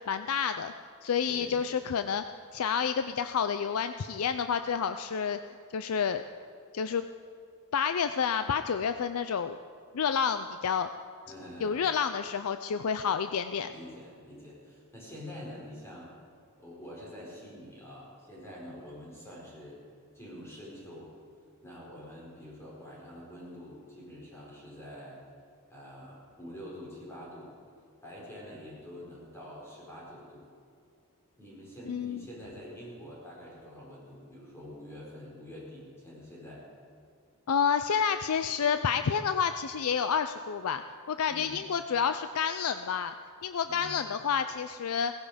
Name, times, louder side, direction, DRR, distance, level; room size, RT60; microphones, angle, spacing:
voice 1, 0.1-0.7 1.0-2.2 2.5-5.4 5.7-6.2 6.7-7.0 7.7-9.6 9.9-10.9 11.6-13.7 31.9-32.2 37.5-40.8 41.1-43.1 43.4-45.1, left 7 dB, 75° left, 10 dB, 0.5 m, -29 dB
voice 2, 11.3-11.9 13.7-16.1 16.6-19.8 20.1-21.1 21.6-25.2 25.7-27.6 28.0-30.5 31.4-36.6 41.3-41.6 43.6-44.0, left 1 dB, 10° left, -5 dB, 5.0 m, -46 dB
17.0 x 15.5 x 5.1 m, 2.3 s
head